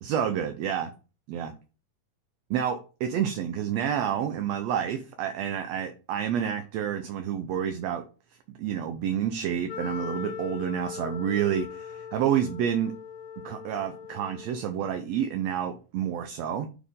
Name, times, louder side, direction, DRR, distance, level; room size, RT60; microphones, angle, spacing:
voice 1, 0.0-0.9 1.3-1.5 2.5-8.0 8.6-12.9 13.4-16.7, right 9 dB, 75° right, 7 dB, 1.6 m, -29 dB
Wind instrument woodwind instrument, 9.7-14.8, left 7 dB, 90° left, 2.1 m, -40 dB
8.3 x 4.3 x 3.7 m, 0.33 s
omnidirectional pair, 3.5 m